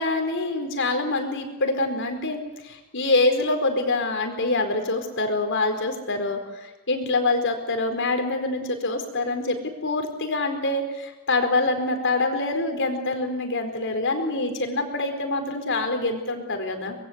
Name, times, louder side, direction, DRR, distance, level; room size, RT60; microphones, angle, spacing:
voice 1, 0.0-17.0, left 2 dB, 60° left, 5 dB, 4.6 m, -25 dB
25.0 x 21.5 x 8.2 m, 1.1 s
head